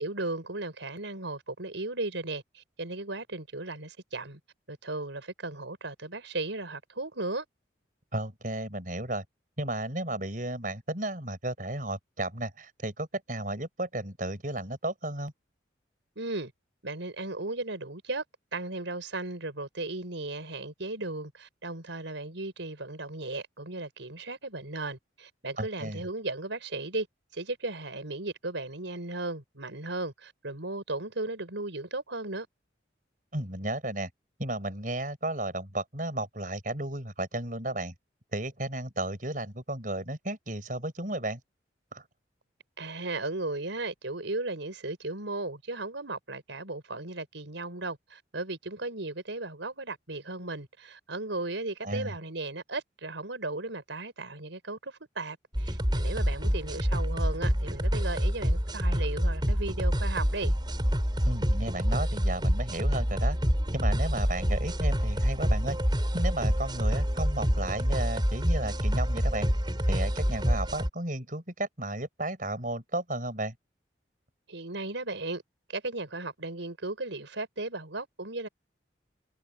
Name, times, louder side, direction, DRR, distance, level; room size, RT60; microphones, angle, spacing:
voice 1, 0.0-4.4 4.7-7.4 16.1-16.5 16.8-18.2 18.5-27.1 27.3-32.5 42.8-60.5 74.5-75.4 75.7-78.5, right 2 dB, 85° right, 4.9 m, -36 dB
voice 2, 8.1-9.2 9.6-15.3 25.6-26.0 33.3-34.1 34.4-37.9 38.3-41.4 41.9-42.0 51.8-52.2 61.2-63.4 63.7-65.8 66.1-69.5 69.9-73.5, right 1 dB, 45° right, 6.8 m, -33 dB
sound 1, 55.5-70.9, equal, 25° right, 7.3 m, -27 dB
head